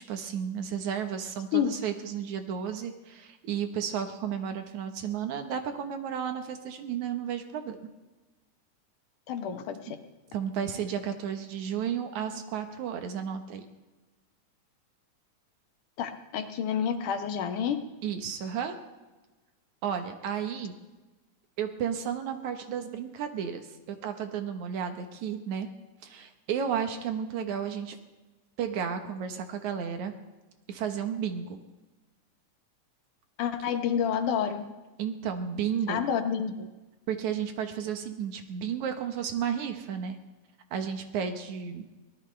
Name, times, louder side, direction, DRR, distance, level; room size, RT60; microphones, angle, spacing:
voice 1, 0.1-7.8 10.3-13.7 18.0-18.8 19.8-20.7 21.6-25.7 26.0-28.0 28.6-30.1 30.7-31.6 35.0-36.0 37.1-40.2 40.7-41.9, right 8 dB, 75° right, 7 dB, 2.6 m, -33 dB
voice 2, 9.3-10.0 16.0-17.8 33.4-34.6 35.9-36.7, left 8 dB, 85° left, 7 dB, 2.7 m, -29 dB
23.5 x 18.0 x 3.3 m, 1.1 s
omnidirectional pair, 3.5 m